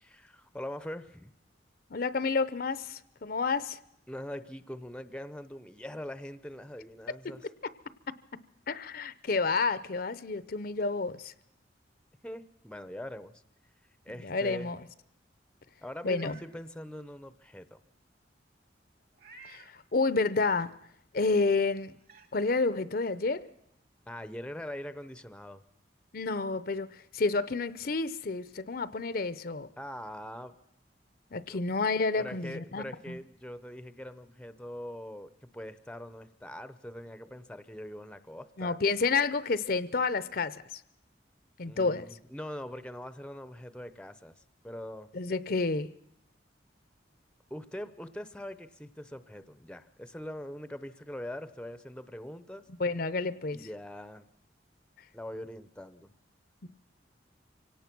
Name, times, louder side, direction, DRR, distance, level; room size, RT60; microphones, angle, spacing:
voice 1, 0.0-1.3 4.1-7.5 12.2-13.4 14.0-14.7 15.8-17.8 24.1-25.6 29.8-30.6 31.5-31.6 32.2-38.8 41.7-44.4 44.6-45.1 47.5-52.6 53.5-54.2 55.1-56.1, left 1 dB, 5° left, 12 dB, 0.7 m, -42 dB
voice 2, 1.9-3.8 7.2-7.4 8.1-8.2 8.7-11.3 14.2-14.8 16.0-16.4 19.4-20.7 21.1-21.9 22.3-23.4 26.1-26.9 27.1-29.7 31.3-33.2 38.6-40.6 41.6-42.1 45.1-45.9 52.8-53.6 56.6-56.7, left 3 dB, 50° left, 15 dB, 0.7 m, -30 dB
Meow, 16.0-16.5 17.0-17.1 19.1-19.8 21.3-21.4 22.0-22.3, right 4 dB, 55° right, 2.5 m, -53 dB
24.5 x 17.5 x 6.0 m, 0.76 s
head